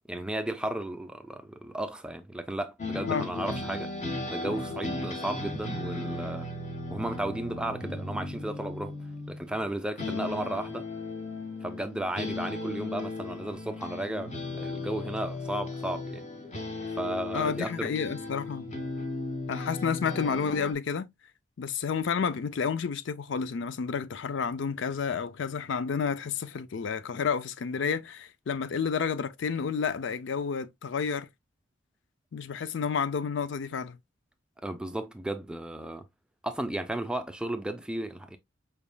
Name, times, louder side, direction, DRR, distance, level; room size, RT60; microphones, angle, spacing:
voice 1, 0.1-3.9 4.3-6.5 6.9-9.0 9.3-10.9 11.6-16.2 16.9-17.9 34.6-36.0 36.4-38.4, right 1 dB, 5° right, 0.4 m, -34 dB
sound 1, 2.8-9.7 10.0-20.7, left 2 dB, 35° left, 1.0 m, -36 dB
voice 2, 17.3-18.7 19.5-21.1 21.6-31.3 32.3-34.0, left 6 dB, 60° left, 0.4 m, -30 dB
5.0 x 3.5 x 2.2 m
head